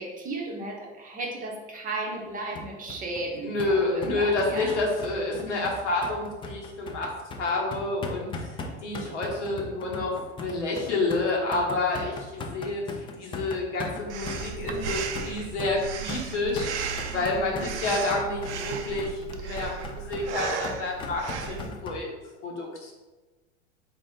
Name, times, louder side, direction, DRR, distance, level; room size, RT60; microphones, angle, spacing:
voice 1, 0.0-4.8 17.1-17.7, right 2 dB, 25° right, 0 dB, 0.7 m, -35 dB
sound 1, 2.5-22.0, left 2 dB, 15° left, 0.4 m, -38 dB
voice 2, 3.4-8.3 8.8-22.1 22.4-22.9, left 2 dB, 80° left, -1 dB, 1.2 m, -29 dB
Breathing, 14.1-21.7, right 6 dB, 70° right, 0.5 m, -35 dB
4.0 x 2.5 x 3.6 m, 1.2 s
hypercardioid pair, 95°, 35 cm